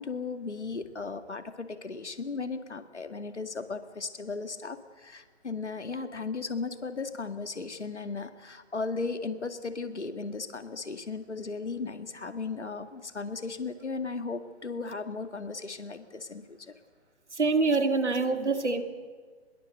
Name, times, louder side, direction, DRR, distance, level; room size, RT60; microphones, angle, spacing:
voice 1, 0.0-16.7, left 4 dB, 85° left, 9 dB, 2.1 m, -36 dB
voice 2, 17.3-18.8, right 3 dB, 85° right, 7 dB, 2.7 m, -25 dB
25.0 x 21.5 x 6.7 m, 1.5 s
figure-of-eight pair, 140°, 34 cm